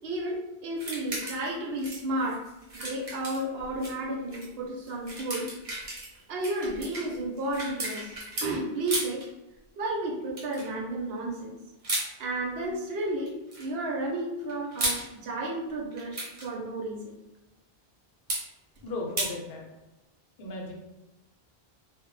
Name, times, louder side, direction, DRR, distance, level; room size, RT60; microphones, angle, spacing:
voice 1, 0.0-2.4 2.7-5.5 6.3-8.1 8.4-9.3 9.8-11.5 12.2-17.1, right 1 dB, 75° right, -1 dB, 0.8 m, -32 dB
sound 1, 0.8-1.5 1.8-3.9 4.3-4.5 4.9-8.5 8.9-9.3 10.4-10.7 11.8-12.1 13.2-13.7 14.5-15.1 15.9-16.5 18.3-18.4 19.2-19.3, right 1 dB, 40° right, 0.6 m, -34 dB
voice 2, 18.8-19.6 20.4-20.7, left 2 dB, 75° left, 0 dB, 0.8 m, -35 dB
2.1 x 2.0 x 3.0 m, 1.0 s
omnidirectional pair, 1.0 m